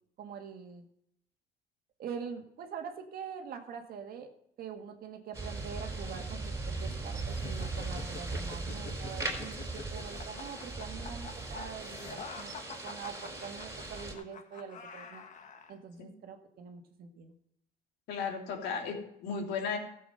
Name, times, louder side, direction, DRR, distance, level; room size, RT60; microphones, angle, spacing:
voice 1, 0.2-0.8 2.0-4.3 4.6-12.5 12.8-15.2 15.7-17.3, right 7 dB, 65° right, 5 dB, 2.0 m, -44 dB
sound 1, 5.3-14.1, right 3 dB, 20° right, 4.0 m, -38 dB
sound 2, 7.3-15.7, left 5 dB, 50° left, 1.6 m, -47 dB
voice 2, 18.1-19.8, left 5 dB, 80° left, 1 dB, 3.0 m, -35 dB
14.5 x 7.7 x 5.6 m, 0.73 s
cardioid pair, 110°, 17 cm